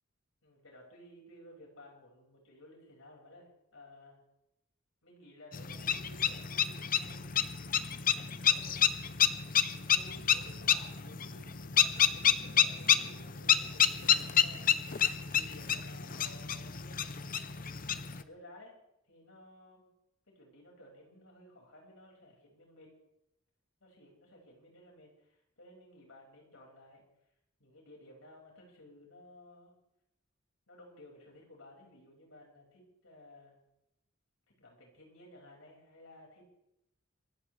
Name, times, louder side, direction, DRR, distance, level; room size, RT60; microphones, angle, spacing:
voice 1, 0.4-4.2 5.0-7.6 8.3-9.2 9.9-14.8 15.1-17.5 18.1-18.8 19.1-19.9 20.3-22.9 23.8-27.0 27.6-29.7 30.7-33.6 34.6-36.5, left 1 dB, 80° left, -1 dB, 5.9 m, -56 dB
sound 1, 5.5-18.2, left 8 dB, 45° left, 0.7 m, -29 dB
26.5 x 15.0 x 3.4 m, 0.84 s
head